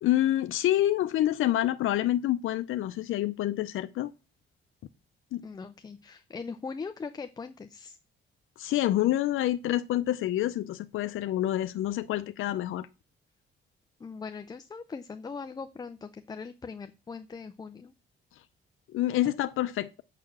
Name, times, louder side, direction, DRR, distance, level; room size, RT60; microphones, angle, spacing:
voice 1, 0.0-4.1 5.3-5.4 8.6-12.9 18.9-20.0, left 13 dB, 80° left, 0.5 m, -27 dB
voice 2, 5.4-8.0 14.0-17.9, left 5 dB, 20° left, 0.5 m, -40 dB
6.7 x 5.8 x 7.2 m
cardioid pair, 160°, 20 cm